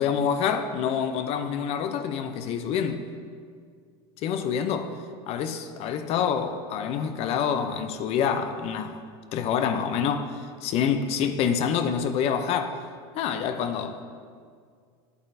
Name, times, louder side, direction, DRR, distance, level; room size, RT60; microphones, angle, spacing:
voice 1, 0.0-3.0 4.2-4.9 5.3-9.0 9.3-10.3 10.6-12.8 13.1-14.0, left 7 dB, 50° left, 0.5 m, -27 dB
9.5 x 8.1 x 2.6 m
supercardioid pair, 115°, 14 cm